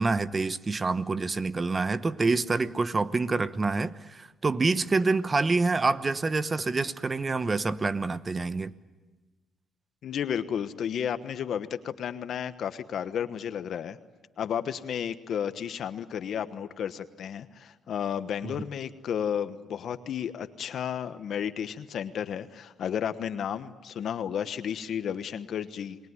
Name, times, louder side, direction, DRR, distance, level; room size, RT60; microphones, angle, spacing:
voice 1, 0.0-8.7, right 3 dB, 30° right, 1.0 m, -27 dB
voice 2, 10.0-14.0 14.4-26.0, left 8 dB, 65° left, 1.2 m, -32 dB
29.0 x 21.0 x 9.7 m
cardioid pair, 90°, 0 cm